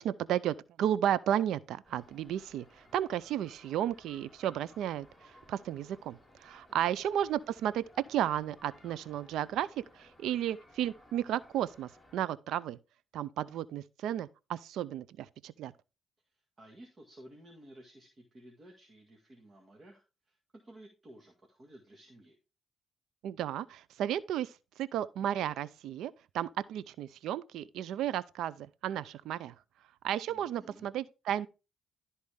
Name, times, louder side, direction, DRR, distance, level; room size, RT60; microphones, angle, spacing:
voice 1, 0.0-7.8 8.1-12.8 13.1-15.7 23.2-29.5 30.0-31.5, right 11 dB, 80° right, 0.4 m, -33 dB
sound 1, 1.8-12.2, left 1 dB, 5° right, 4.7 m, -60 dB
voice 2, 16.3-22.4 30.3-30.9, right 1 dB, 35° right, 1.8 m, -55 dB
12.5 x 4.2 x 3.5 m
cardioid pair, 90°, 0 cm